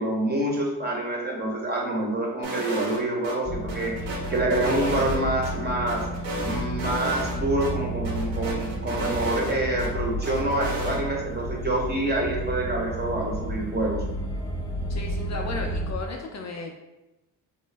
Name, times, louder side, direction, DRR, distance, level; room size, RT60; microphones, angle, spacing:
voice 1, 0.0-6.0 6.4-14.0, right 1 dB, 25° right, -1 dB, 0.9 m, -27 dB
sound 1, 2.4-3.4 3.7-5.5 5.9-7.4 7.6-7.7 8.0-9.9 10.2-11.0, right 2 dB, 75° right, 1.0 m, -32 dB
sound 2, 3.4-15.9, right 1 dB, 10° left, 1.0 m, -32 dB
voice 2, 14.9-16.7, left 3 dB, 40° left, 1 dB, 0.5 m, -34 dB
3.7 x 2.1 x 3.3 m, 1.0 s
supercardioid pair, 70°, 41 cm